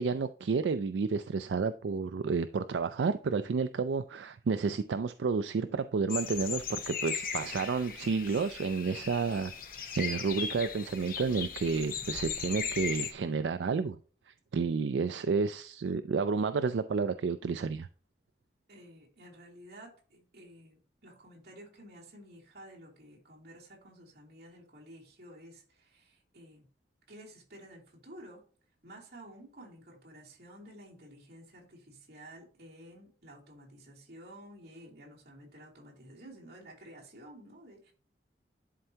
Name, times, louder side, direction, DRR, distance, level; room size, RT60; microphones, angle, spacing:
voice 1, 0.0-9.5 10.0-14.0 14.3-17.9, right 5 dB, 80° right, 0.4 m, -31 dB
sound 1, 6.1-13.1, left 6 dB, 50° left, 1.0 m, -38 dB
voice 2, 18.7-26.7 27.1-28.4 28.8-37.9, right 1 dB, 60° right, 3.0 m, -52 dB
11.0 x 4.5 x 2.8 m
head